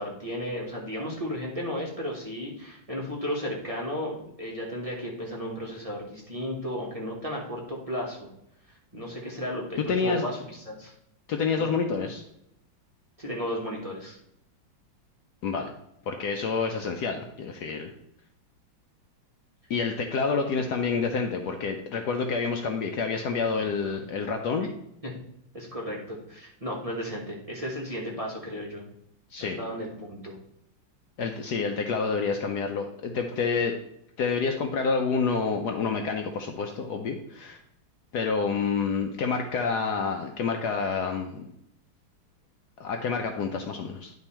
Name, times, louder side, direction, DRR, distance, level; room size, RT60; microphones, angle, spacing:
voice 1, 0.0-8.3 8.9-10.9 11.5-11.7 13.2-14.2 20.3-20.4 23.6-24.0 25.0-25.1 25.5-28.9 29.4-30.4, equal, 20° right, -3 dB, 1.1 m, -34 dB
voice 2, 9.9-10.3 11.3-12.2 15.4-15.7 16.1-17.9 19.7-24.7 29.3-29.6 31.2-33.7 34.2-37.6 38.1-41.5 42.8-44.1, left 5 dB, 70° left, 4 dB, 1.0 m, -28 dB
10.5 x 3.5 x 4.3 m, 0.77 s
omnidirectional pair, 2.1 m